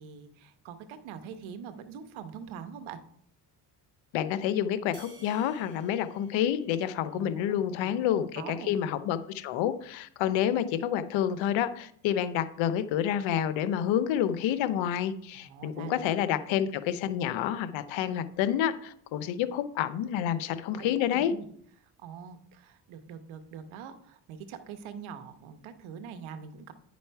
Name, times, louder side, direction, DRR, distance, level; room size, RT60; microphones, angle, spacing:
voice 1, 0.0-3.0 7.1-7.5 7.8-8.8 15.3-16.2 20.7-21.5 21.8-26.7, right 7 dB, 75° right, 10 dB, 1.1 m, -43 dB
voice 2, 4.1-21.3, left 10 dB, 75° left, 13 dB, 0.8 m, -29 dB
sound 1, 4.9-7.5, right 3 dB, 45° right, 3.2 m, -56 dB
9.7 x 5.2 x 4.5 m, 0.64 s
supercardioid pair, 85°, 47 cm